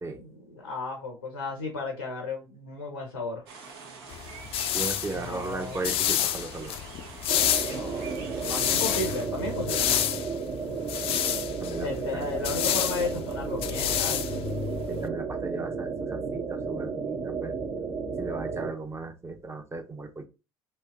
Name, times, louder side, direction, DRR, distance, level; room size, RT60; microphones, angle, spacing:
voice 1, 0.2-3.4 5.1-6.0 7.7-9.9 11.7-14.3, left 3 dB, 85° left, 1 dB, 0.7 m, -34 dB
sound 1, 3.5-9.3, right 4 dB, 70° right, 0.9 m, -45 dB
sound 2, 4.1-15.1, left 11 dB, 50° left, 0.4 m, -30 dB
voice 2, 4.7-6.7 11.6-11.9 12.1-12.3 14.9-17.5 18.2-20.3, right 3 dB, 20° right, 6 dB, 0.8 m, -36 dB
sound 3, 7.3-18.7, right 5 dB, 50° right, 1.1 m, -33 dB
3.2 x 2.8 x 3.5 m, 0.29 s
figure-of-eight pair, 55°, 13 cm